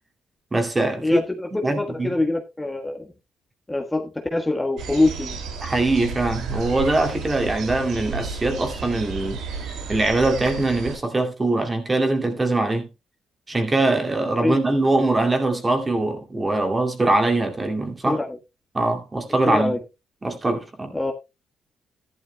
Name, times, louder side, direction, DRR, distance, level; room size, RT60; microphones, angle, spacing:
voice 1, 0.5-1.2 1.5-2.1 5.6-9.4 9.9-12.9 13.5-18.2 18.7-19.8 20.2-21.0, right 2 dB, 25° right, 2.4 m, -22 dB
voice 2, 1.0-3.1 3.7-5.4 14.4-14.6 18.0-18.4 19.5-19.8 20.9-21.1, left 2 dB, 10° left, 1.4 m, -24 dB
sound 1, 4.8-11.0, right 5 dB, 80° right, 2.5 m, -32 dB
13.5 x 11.5 x 2.2 m
cardioid pair, 90°, 0 cm